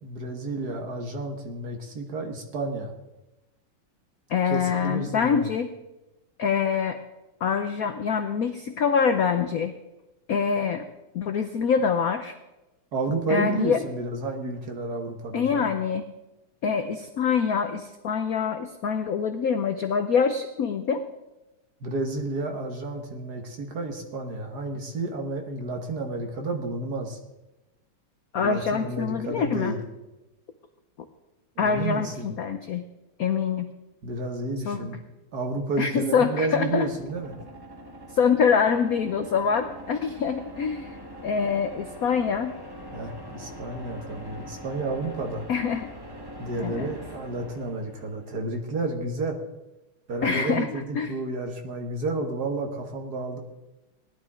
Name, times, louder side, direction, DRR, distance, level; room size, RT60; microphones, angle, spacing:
voice 1, 0.0-2.9 4.4-5.5 12.9-15.7 21.8-27.2 28.4-29.8 31.6-32.3 34.0-35.0 35.3-37.4 42.9-45.5 46.4-49.4 50.1-53.4, right 2 dB, 50° right, 3 dB, 1.8 m, -31 dB
voice 2, 4.3-5.7 6.4-7.0 7.4-9.7 10.3-10.8 11.1-12.3 13.3-13.8 15.3-16.0 16.6-21.0 28.3-29.7 31.6-32.8 33.2-33.7 34.7-34.9 35.8-36.9 38.1-41.0 41.2-42.6 45.5-45.9 46.6-46.9 50.2-50.7 51.0-51.1, left 6 dB, 75° left, 8 dB, 0.8 m, -25 dB
sound 1, 35.3-48.4, equal, 20° right, 0.6 m, -43 dB
18.0 x 11.5 x 3.7 m, 1.0 s
omnidirectional pair, 2.4 m